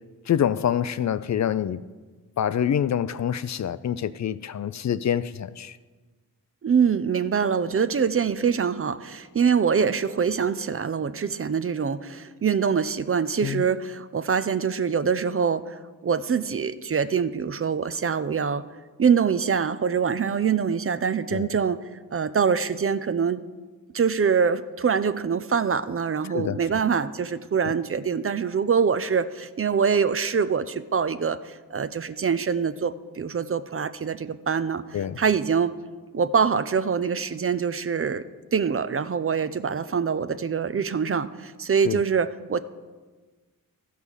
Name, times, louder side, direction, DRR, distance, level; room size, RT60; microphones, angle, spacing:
voice 1, 0.3-1.8 2.4-5.7 13.4-13.6 21.3-21.5 26.3-26.6 34.9-35.2 41.9-42.0, left 9 dB, 50° left, 0.4 m, -26 dB
voice 2, 6.6-15.7 16.0-18.6 19.0-21.8 22.1-23.4 23.9-35.8 36.1-38.2 38.5-42.6, right 6 dB, 40° right, 0.5 m, -24 dB
13.5 x 5.5 x 6.3 m
cardioid pair, 55°, 36 cm